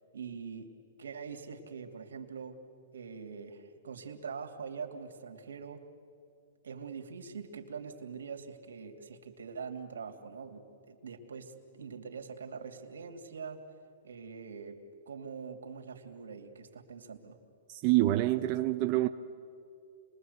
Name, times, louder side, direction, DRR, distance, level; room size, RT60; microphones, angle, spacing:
voice 1, 0.1-0.7 1.0-2.6 2.9-5.8 6.6-13.6 14.0-14.8 15.1-17.4, right 5 dB, 85° right, 2.8 m, -43 dB
voice 2, 17.7-19.1, right 16 dB, 40° right, 0.7 m, -26 dB
27.5 x 21.5 x 8.1 m
hypercardioid pair, 135°, 0 cm